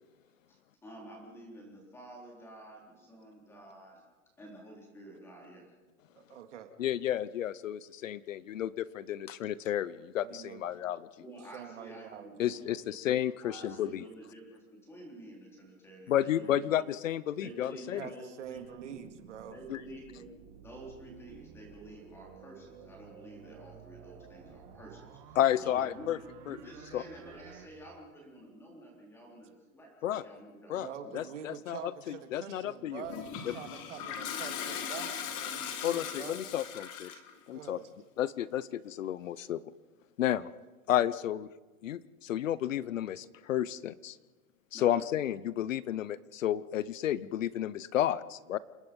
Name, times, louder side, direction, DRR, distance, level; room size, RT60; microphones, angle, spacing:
voice 1, 0.5-4.0 4.4-5.6 11.2-13.2 13.4-16.8 17.4-19.0 19.5-20.3 20.6-26.1 26.5-31.1 31.4-31.5 44.7-44.9, right 1 dB, 5° left, -1 dB, 3.9 m, -50 dB
voice 2, 6.2-6.7 10.2-10.6 11.5-12.4 17.4-19.6 30.7-36.4 37.1-37.2 37.5-37.9, right 8 dB, 60° right, 7 dB, 2.3 m, -46 dB
voice 3, 6.8-11.1 12.4-14.1 16.1-18.1 19.7-19.8 25.4-26.2 26.5-26.6 26.9-27.0 30.0-30.2 30.7-30.9 31.1-33.0 33.5-33.6 35.8-37.1 37.5-37.8 38.2-39.6 40.2-40.5 40.9-41.5 41.8-44.2 44.7-48.6, left 11 dB, 70° left, 18 dB, 0.9 m, -32 dB
sound 1, 18.4-27.7, right 7 dB, 25° right, 1.9 m, -53 dB
Toilet flush, 33.0-37.3, left 8 dB, 25° left, 1.5 m, -39 dB
28.5 x 19.5 x 5.4 m, 1.2 s
supercardioid pair, 180°, 41 cm